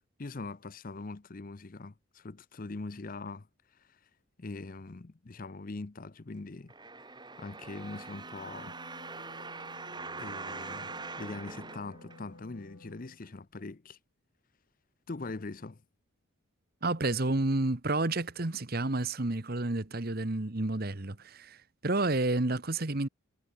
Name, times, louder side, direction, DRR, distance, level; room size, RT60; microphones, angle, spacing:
voice 1, 0.0-3.5 3.7-4.0 4.4-6.7 7.4-8.8 10.2-10.9 11.2-14.0 15.1-15.8, left 3 dB, 40° left, 0.6 m, -42 dB
sound 1, 6.7-12.6 13.2-13.3, right 3 dB, 20° right, 2.4 m, -43 dB
Wind instrument woodwind instrument, 8.0-13.2, left 2 dB, 90° left, 2.9 m, -54 dB
voice 2, 16.8-23.1, right 2 dB, 45° right, 1.2 m, -30 dB
head